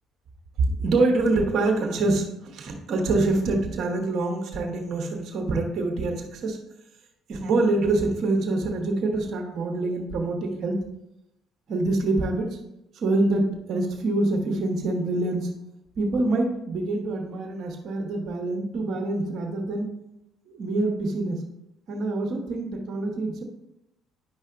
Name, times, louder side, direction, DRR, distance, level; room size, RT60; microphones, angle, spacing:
voice 1, 0.8-6.6 7.3-10.8 11.7-12.6 12.9-15.5 16.0-19.9 20.5-21.4 21.9-23.4, right 2 dB, 55° right, 2 dB, 1.1 m, -25 dB
9.6 x 5.4 x 2.5 m, 0.84 s
hypercardioid pair, 50°, 0 cm